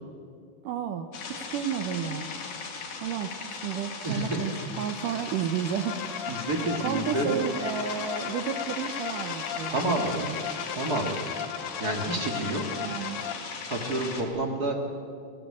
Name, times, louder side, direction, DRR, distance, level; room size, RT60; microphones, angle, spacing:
voice 1, 0.6-1.1 1.4-2.3 3.0-6.0 6.8-10.4 12.8-13.2, right 8 dB, 75° right, 8 dB, 2.0 m, -32 dB
sound 1, 1.1-14.2, left 5 dB, 65° left, 4.1 m, -38 dB
voice 2, 4.0-4.7 6.3-7.4 9.7-10.2 10.7-11.2 11.8-12.6 13.7-14.7, right 2 dB, 35° right, 3 dB, 1.5 m, -29 dB
sound 2, 5.5-13.3, left 10 dB, 80° left, 2.8 m, -37 dB
25.0 x 16.5 x 8.5 m, 2.4 s
omnidirectional pair, 4.6 m